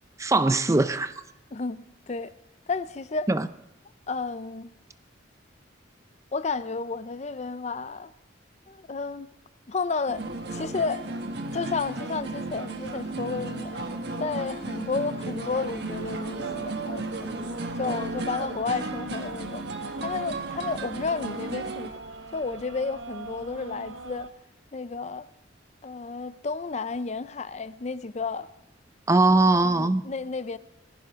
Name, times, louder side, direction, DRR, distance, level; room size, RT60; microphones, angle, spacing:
voice 1, 0.2-1.1 3.3-3.5 29.1-30.0, right 2 dB, 15° right, 0.4 m, -21 dB
voice 2, 1.5-2.3 2.7-3.3 4.1-4.7 6.3-8.1 8.7-9.3 9.7-10.3 10.5-11.1 11.5-13.9 14.2-17.3 17.8-19.6 20.0-22.0 22.3-24.3 24.7-25.3 25.8-28.5 29.6-30.6, left 4 dB, 35° left, 0.5 m, -32 dB
sound 1, 10.1-21.9, right 2 dB, 60° right, 1.5 m, -34 dB
sound 2, 15.6-24.3, right 4 dB, 85° right, 0.8 m, -40 dB
19.5 x 15.5 x 3.6 m
head